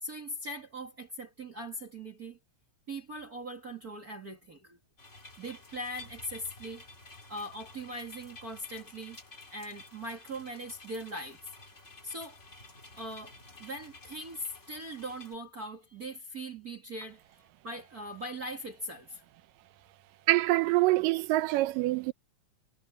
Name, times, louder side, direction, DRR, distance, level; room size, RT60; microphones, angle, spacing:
voice 1, 0.0-2.4 2.9-4.8 5.4-6.8 7.3-9.2 9.5-11.4 12.0-12.4 13.0-17.2 17.6-19.2, right 1 dB, 30° right, 2.0 m, -40 dB
sound 1, 5.0-15.4, left 2 dB, 20° left, 3.8 m, -52 dB
voice 2, 20.3-22.1, right 19 dB, 85° right, 2.4 m, -25 dB
omnidirectional pair, 3.8 m